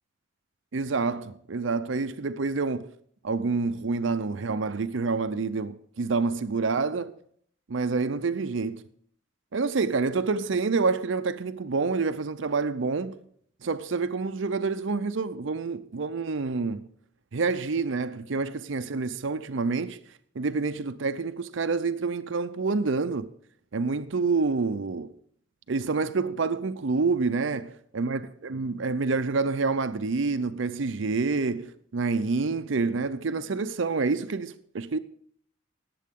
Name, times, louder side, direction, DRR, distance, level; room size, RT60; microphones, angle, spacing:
voice 1, 0.7-2.9 3.2-7.1 7.7-8.8 9.5-13.2 13.6-16.9 17.3-20.0 20.4-23.3 23.7-25.1 25.7-35.0, right 4 dB, 65° right, 0.6 m, -28 dB
18.5 x 7.7 x 3.7 m
head